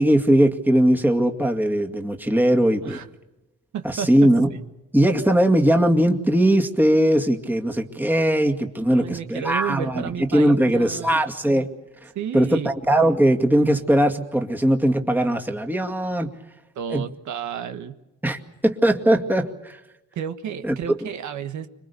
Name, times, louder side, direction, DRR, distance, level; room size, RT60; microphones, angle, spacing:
voice 1, 0.0-3.0 3.8-4.5 4.9-11.7 12.0-16.3 16.9-17.0 18.2-19.8 20.6-21.0, right 1 dB, 5° right, 3 dB, 2.2 m, -20 dB
voice 2, 3.7-4.1 8.9-11.2 12.1-12.7 16.7-18.0 20.1-21.7, right 8 dB, 70° right, 8 dB, 1.5 m, -31 dB
26.0 x 22.5 x 6.9 m, 0.99 s
cardioid pair, 90°, 30 cm